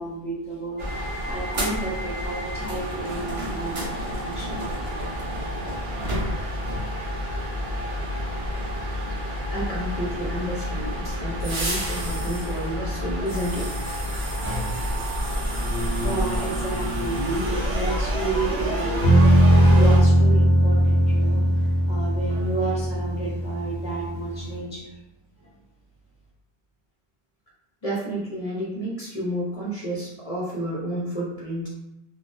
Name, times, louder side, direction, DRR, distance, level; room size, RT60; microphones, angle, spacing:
voice 1, 0.0-4.9 16.0-24.9 25.4-25.5, right 3 dB, 5° right, -6 dB, 0.7 m, -32 dB
sound 1, 0.8-20.0, equal, 75° right, 1.1 m, -28 dB
voice 2, 9.5-13.7 27.8-31.7, equal, 40° left, -7 dB, 0.7 m, -30 dB
sound 2, 19.0-24.6, right 1 dB, 75° left, 0.9 m, -19 dB
3.7 x 2.2 x 2.5 m, 0.89 s
omnidirectional pair, 1.0 m